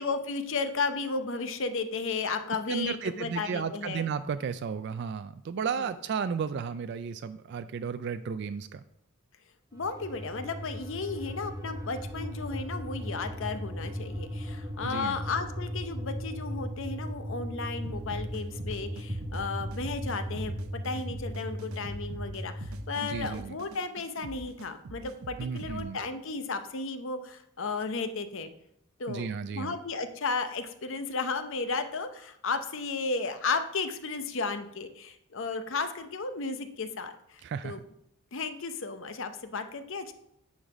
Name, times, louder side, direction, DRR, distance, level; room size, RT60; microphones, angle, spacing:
voice 1, 0.0-4.1 5.8-5.9 9.7-28.5 29.0-37.8 38.3-40.1, left 4 dB, 60° left, 9 dB, 0.7 m, -34 dB
voice 2, 2.7-8.8 14.8-15.2 23.0-23.6 25.4-26.0 29.1-29.7 37.4-37.8, right 6 dB, 50° right, 11 dB, 0.3 m, -33 dB
sound 1, 9.7-23.0, equal, 15° right, 0.8 m, -37 dB
sound 2, 17.9-25.8, right 2 dB, 70° right, 0.7 m, -44 dB
9.6 x 4.0 x 6.0 m, 0.73 s
head